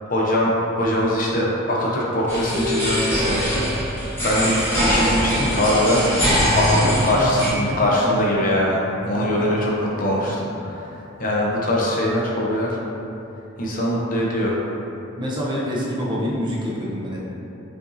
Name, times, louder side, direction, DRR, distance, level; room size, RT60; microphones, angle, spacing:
voice 1, 0.1-0.5 0.8-6.0 6.5-9.7 10.0-10.7 11.2-12.8 13.6-14.6, left 1 dB, 40° left, -4 dB, 0.6 m, -22 dB
sound 1, 2.3-7.5, equal, 10° left, 0.9 m, -22 dB
Harp, 2.5-8.6, left 4 dB, 85° right, 1.3 m, -35 dB
voice 2, 6.7-8.1 9.0-9.5 10.0-10.8 15.2-17.2, equal, 20° right, -5 dB, 0.4 m, -28 dB
5.7 x 2.5 x 2.6 m, 2.9 s
head